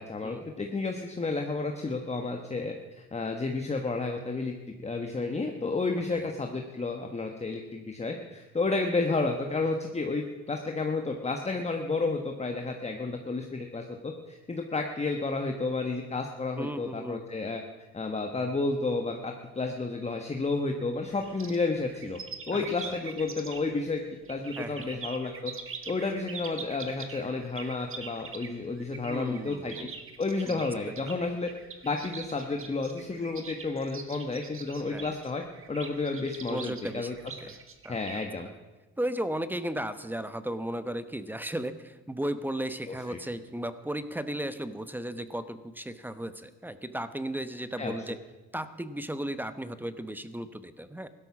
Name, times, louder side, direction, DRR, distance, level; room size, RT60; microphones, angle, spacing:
voice 1, 0.0-2.7 3.1-4.5 4.8-17.6 17.9-22.2 22.5-24.0 24.3-25.5 25.9-29.9 30.2-31.5 31.8-35.4 35.7-37.1 37.9-38.5 42.9-43.2 47.8-47.9, left 3 dB, 20° left, 3 dB, 1.3 m, -31 dB
voice 2, 16.6-17.2 22.5-23.0 24.6-25.0 29.0-29.9 30.5-30.6 34.9-35.1 36.5-37.2 37.4-37.6 37.8-38.0 39.0-48.2 48.5-51.1, right 1 dB, 5° right, 12 dB, 1.0 m, -35 dB
sound 1, 21.0-23.8 24.3-38.3, right 5 dB, 45° right, 1.8 m, -43 dB
16.5 x 12.5 x 6.1 m, 1.2 s
cardioid pair, 90°, 30 cm